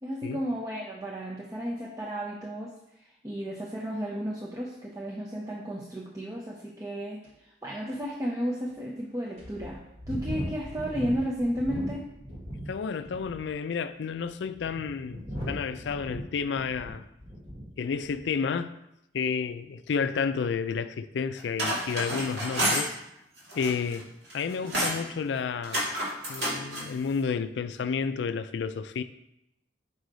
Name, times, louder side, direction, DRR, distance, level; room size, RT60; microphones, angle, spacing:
voice 1, 0.0-2.7 3.2-12.0, equal, 20° right, 0.6 m, -33 dB
sound 1, 7.2-7.3 7.9-8.0 8.7-8.8 9.4-12.7 13.0-13.5 14.2-17.7 18.0-18.3, equal, 40° right, 1.4 m, -38 dB
voice 2, 12.7-17.0 17.8-18.7 19.1-22.9 23.5-24.0 24.3-25.8 26.3-29.0, left 6 dB, 80° left, 0.4 m, -31 dB
sound 2, 21.4-22.9 23.4-24.0 24.3-25.0 25.6-26.9, right 1 dB, 75° right, 2.0 m, -29 dB
5.3 x 4.8 x 3.9 m
head